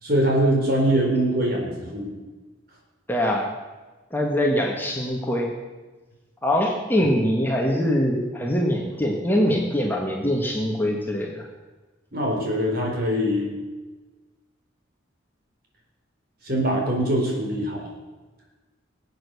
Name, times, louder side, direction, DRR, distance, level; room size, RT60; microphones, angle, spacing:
voice 1, 0.0-2.1 12.1-13.5 16.4-17.9, right 1 dB, 50° right, -1 dB, 4.4 m, -23 dB
voice 2, 3.1-3.5 4.1-5.5 6.4-11.4, equal, 10° left, 0 dB, 1.6 m, -23 dB
21.0 x 8.3 x 7.0 m, 1.2 s
head